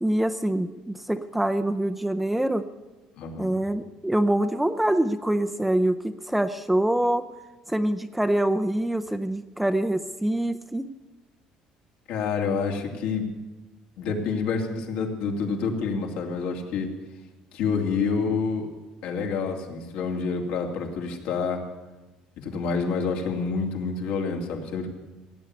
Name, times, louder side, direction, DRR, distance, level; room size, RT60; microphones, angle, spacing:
voice 1, 0.0-2.7 3.4-7.3 7.7-10.8, right 1 dB, 5° right, 9 dB, 0.5 m, -25 dB
voice 2, 3.2-3.6 12.1-13.3 14.0-16.9 17.5-18.7 19.0-21.6 22.4-24.9, left 5 dB, 75° left, 2 dB, 2.6 m, -28 dB
17.0 x 8.2 x 9.8 m, 1.2 s
cardioid pair, 145°, 2 cm